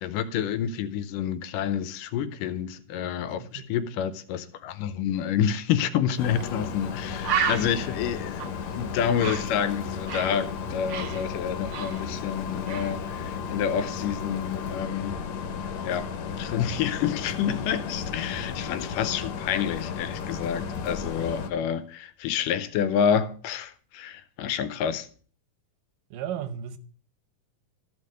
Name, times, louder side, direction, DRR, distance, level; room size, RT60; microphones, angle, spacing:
voice 1, 0.0-15.2 15.8-16.1 16.4-25.1, left 8 dB, 85° left, 2.4 m, -28 dB
voice 2, 3.2-3.7 26.1-26.8, right 9 dB, 90° right, 2.6 m, -35 dB
sound 1, 6.2-21.5, left 6 dB, 65° left, 1.9 m, -34 dB
Bird, 6.4-6.5 6.8-6.9 7.2-10.4 10.7-12.4 12.7-13.0, right 7 dB, 70° right, 1.3 m, -32 dB
13.0 x 5.3 x 6.4 m
omnidirectional pair, 3.8 m